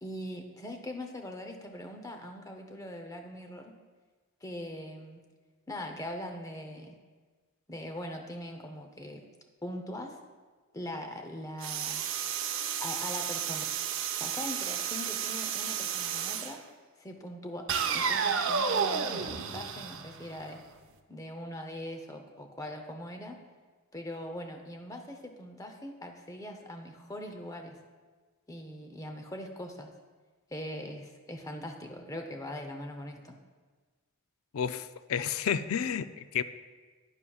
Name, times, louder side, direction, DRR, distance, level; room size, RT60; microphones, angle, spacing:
voice 1, 0.0-3.8 4.4-5.2 5.7-7.0 7.7-9.2 9.6-10.2 10.7-12.0 12.8-13.7 14.1-16.6 17.0-17.7 17.9-20.6 21.1-23.4 23.9-27.8 28.5-29.9 30.5-33.4, left 1 dB, 15° left, 4 dB, 0.7 m, -41 dB
sound 1, 11.6-16.6 17.7-20.6, right 7 dB, 60° right, 0.6 m, -32 dB
voice 2, 34.5-36.4, left 8 dB, 70° left, 12 dB, 0.4 m, -31 dB
11.0 x 9.8 x 2.4 m, 1.4 s
head